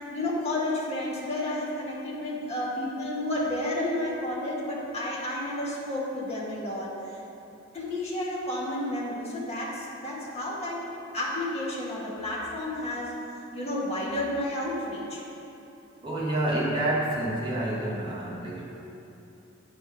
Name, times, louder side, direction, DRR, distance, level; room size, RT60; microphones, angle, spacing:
voice 1, 0.1-7.1 7.7-10.8 11.1-13.1 13.5-15.2 18.6-18.7, left 1 dB, 30° left, -5 dB, 1.6 m, -31 dB
voice 2, 16.0-18.6, right 1 dB, 25° right, -6 dB, 1.6 m, -28 dB
8.7 x 5.0 x 5.9 m, 2.8 s
head